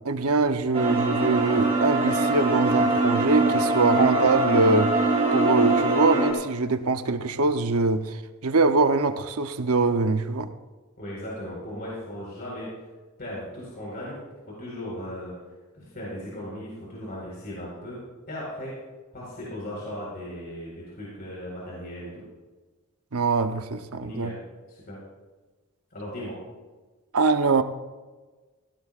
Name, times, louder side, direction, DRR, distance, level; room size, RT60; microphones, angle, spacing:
voice 1, 0.0-4.9 5.3-10.5 23.1-24.3 27.1-27.6, right 3 dB, 80° right, 9 dB, 0.8 m, -23 dB
sound 1, 0.7-6.3, right 2 dB, 25° right, 3.6 m, -23 dB
voice 2, 11.0-12.7 13.2-14.2 14.5-15.3 15.7-18.0 18.3-18.7 19.1-22.2 23.9-24.4 24.7-25.0 25.9-26.4, left 1 dB, 45° left, -5 dB, 4.6 m, -37 dB
19.5 x 16.0 x 2.5 m, 1.3 s
head